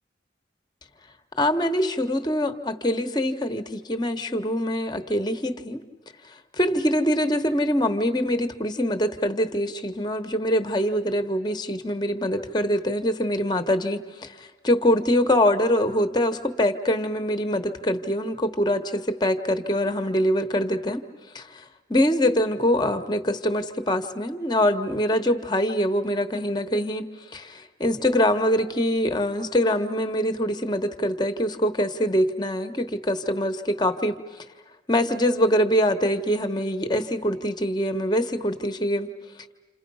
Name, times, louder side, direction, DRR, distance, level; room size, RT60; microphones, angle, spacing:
voice 1, 1.4-5.8 6.6-21.0 21.3-21.6 21.9-34.1 34.9-39.1, equal, 25° left, 8 dB, 1.1 m, -24 dB
29.0 x 27.5 x 5.5 m, 1.2 s
head